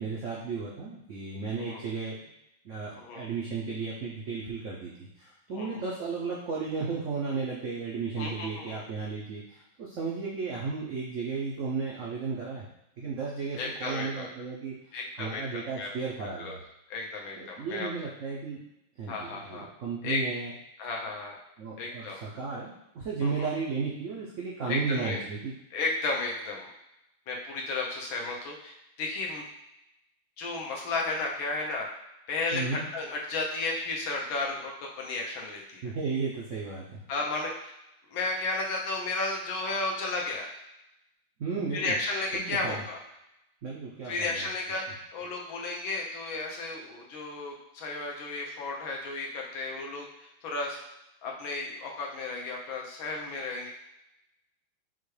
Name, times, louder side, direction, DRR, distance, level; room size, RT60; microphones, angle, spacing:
voice 1, 0.0-2.3 2.6-12.7 13.0-16.6 17.4-18.6 19.0-20.5 21.6-25.5 32.5-32.8 35.8-37.0 41.4-41.9 42.3-42.8 43.6-44.5, right 4 dB, 80° right, -4 dB, 0.6 m, -34 dB
voice 2, 8.2-8.8 13.6-14.3 14.9-15.9 16.2-16.5 16.9-17.9 19.1-19.7 20.0-20.3 20.8-21.3 21.8-22.2 23.2-23.5 24.7-25.2 25.7-26.7 27.3-29.4 30.4-31.9 32.3-35.9 37.1-37.5 38.1-40.6 41.7-43.0 44.0-50.8 51.2-53.7, left 3 dB, 80° left, -1 dB, 1.6 m, -33 dB
6.0 x 2.3 x 3.2 m, 0.85 s
omnidirectional pair, 2.2 m